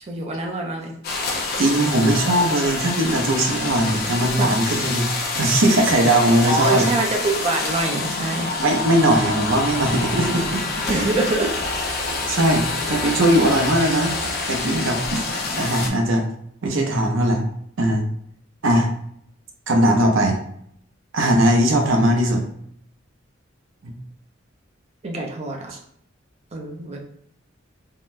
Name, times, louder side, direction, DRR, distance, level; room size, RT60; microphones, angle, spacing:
voice 1, 0.1-0.9 4.4-4.5 6.5-8.5 10.9-11.5 20.2-20.3 25.0-25.7 26.5-27.0, right 3 dB, 35° right, 1 dB, 0.5 m, -24 dB
sound 1, 1.0-15.9, left 3 dB, 50° left, 0.5 m, -27 dB
voice 2, 1.6-6.9 8.6-10.6 12.3-14.1 14.5-15.2 15.6-16.2 16.6-17.4 17.8-18.0 18.6-18.9 19.7-20.4 21.1-22.4 23.8-23.9, right 1 dB, 80° right, 2 dB, 0.6 m, -19 dB
3.7 x 2.1 x 2.5 m, 0.69 s
head